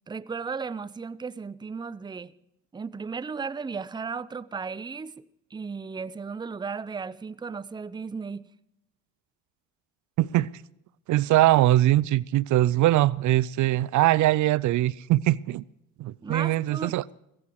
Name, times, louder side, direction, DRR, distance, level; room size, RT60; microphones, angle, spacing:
voice 1, 0.1-2.3 2.7-5.2 5.5-8.5 16.2-17.0, right 5 dB, 15° right, 0.5 m, -35 dB
voice 2, 10.2-10.5 11.1-15.6 16.0-17.0, right 15 dB, 70° right, 0.5 m, -22 dB
16.0 x 14.5 x 4.7 m
cardioid pair, 85°, 31 cm